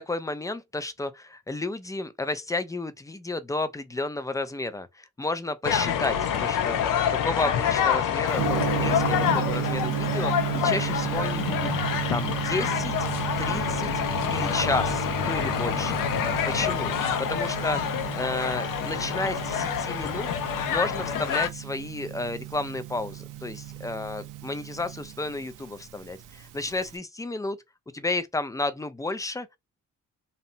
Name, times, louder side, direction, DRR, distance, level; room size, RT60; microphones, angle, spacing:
voice 1, 0.0-11.7 12.1-12.9 13.4-13.9 14.3-16.0 16.5-16.9 17.2-17.8 18.2-20.3 20.7-27.6 27.9-29.6, left 2 dB, 10° left, 0.4 m, -32 dB
sound 1, 5.6-21.5, left 8 dB, 80° left, 0.6 m, -27 dB
Gong, 8.3-26.9, right 15 dB, 75° right, 0.5 m, -34 dB
2.7 x 2.0 x 2.7 m
cardioid pair, 80°, 32 cm